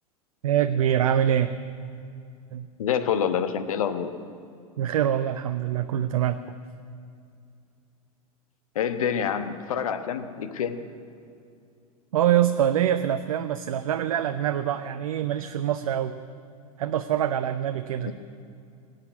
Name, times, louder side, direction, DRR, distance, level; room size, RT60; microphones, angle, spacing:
voice 1, 0.4-1.5 2.5-2.7 4.8-6.4 12.1-16.1 16.8-18.1, right 10 dB, 65° right, 10 dB, 0.6 m, -24 dB
voice 2, 2.8-4.1 8.7-10.8 18.0-18.1, left 8 dB, 65° left, 10 dB, 1.1 m, -27 dB
18.0 x 8.1 x 9.4 m, 2.4 s
figure-of-eight pair, 90°, 19 cm